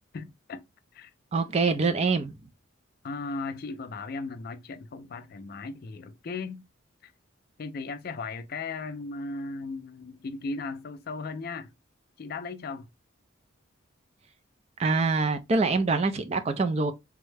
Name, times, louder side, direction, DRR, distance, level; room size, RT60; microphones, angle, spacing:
voice 1, 0.1-0.6 0.9-1.1 3.0-6.6 7.0-7.1 7.6-11.7 12.2-12.9, left 3 dB, 45° left, 0.4 m, -36 dB
voice 2, 1.3-2.3 14.8-16.9, right 3 dB, 30° right, 0.3 m, -25 dB
3.5 x 2.1 x 3.2 m
head